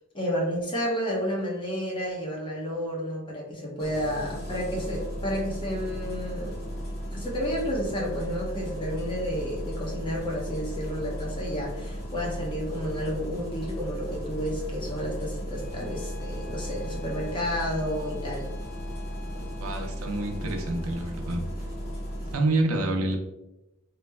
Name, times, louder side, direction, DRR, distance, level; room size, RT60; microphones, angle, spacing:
voice 1, 0.1-6.6 7.1-18.5, equal, 25° left, -3 dB, 0.8 m, -31 dB
Engine starting, 3.8-22.3, equal, 45° left, 1.0 m, -35 dB
Bowed string instrument, 15.5-21.2, left 9 dB, 80° left, 0.5 m, -50 dB
voice 2, 19.6-21.4 22.3-23.2, right 2 dB, 75° right, 3 dB, 0.6 m, -27 dB
3.2 x 2.1 x 3.3 m, 0.95 s
head